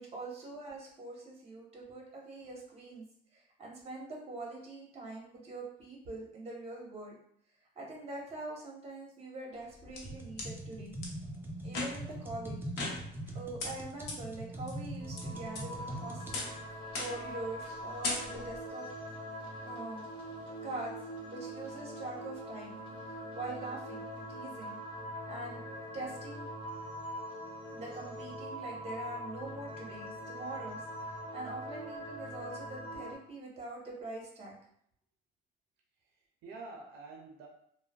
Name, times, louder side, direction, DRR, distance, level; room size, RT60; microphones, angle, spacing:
voice 1, 0.0-3.0 3.3-7.1 7.8-10.9 11.6-12.6 13.3-16.5 17.0-18.8 19.6-20.0 20.6-20.9 21.3-22.8 23.0-24.8 25.3-25.6 25.9-26.5 27.7-30.8 31.3-34.5, right 2 dB, 35° right, -2 dB, 1.0 m, -43 dB
sound 1, 9.5-10.5 11.0-11.1 11.7-12.2 12.8-13.3 13.6-13.7 14.1-14.2 14.7-15.2 15.5-15.9 16.3-16.6 16.9-17.3 17.6-17.8 18.0-18.6, left 3 dB, 80° left, 0.8 m, -38 dB
sound 2, 10.0-16.4, right 1 dB, 15° right, 0.4 m, -42 dB
sound 3, 15.0-33.2, equal, 30° left, 0.9 m, -43 dB
voice 2, 36.0-37.5, right 3 dB, 85° right, 1 dB, 0.5 m, -51 dB
3.1 x 2.1 x 2.3 m, 0.68 s
cardioid pair, 110°, 17 cm